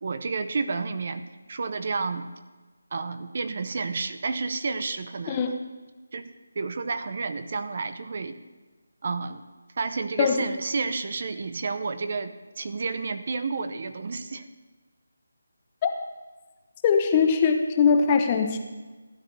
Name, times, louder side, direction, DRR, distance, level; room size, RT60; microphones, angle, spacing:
voice 1, 0.0-2.3 2.9-5.4 6.1-6.3 6.6-8.4 9.0-9.4 9.8-14.5, right 4 dB, 45° right, 10 dB, 0.7 m, -30 dB
voice 2, 5.3-5.6 10.2-10.5 15.8-15.9 16.8-18.6, left 6 dB, 20° left, 5 dB, 0.8 m, -21 dB
16.0 x 10.0 x 3.4 m, 1.3 s
figure-of-eight pair, 170°, 0 cm